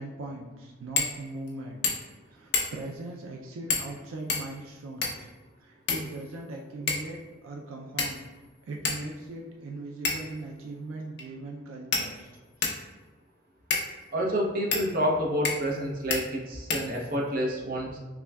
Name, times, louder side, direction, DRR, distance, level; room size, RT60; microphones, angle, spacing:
voice 1, 0.0-2.0 2.3-5.3 5.6-8.3 8.6-12.3, right 2 dB, 80° right, 1 dB, 0.4 m, -39 dB
sound 1, 0.9-1.2 1.5-1.6 1.8-2.2 2.5-2.9 3.7-3.9 4.3-5.3 5.9-6.5 6.9-7.1 8.0-8.4 8.8-9.0 10.0-10.4 11.2-11.3 11.9-12.8 13.7-13.9 14.7-14.9 15.4-15.8 16.1-16.2 16.7-17.3, left 4 dB, 55° left, 0.6 m, -30 dB
voice 2, 14.1-18.0, equal, 45° right, -2 dB, 0.6 m, -28 dB
5.8 x 2.2 x 2.2 m, 1.2 s
head